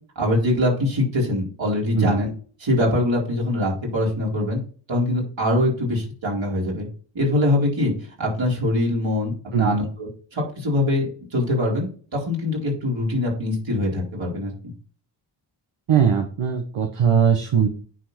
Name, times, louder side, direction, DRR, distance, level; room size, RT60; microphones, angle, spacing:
voice 1, 0.1-2.3 2.6-4.6 4.9-6.9 7.1-7.9 8.2-9.3 9.6-14.7, left 1 dB, 60° right, -3 dB, 4.7 m, -23 dB
voice 2, 15.9-17.7, right 7 dB, 75° right, 5 dB, 1.3 m, -20 dB
9.7 x 5.1 x 4.3 m, 0.43 s
cardioid pair, 45°, 50 cm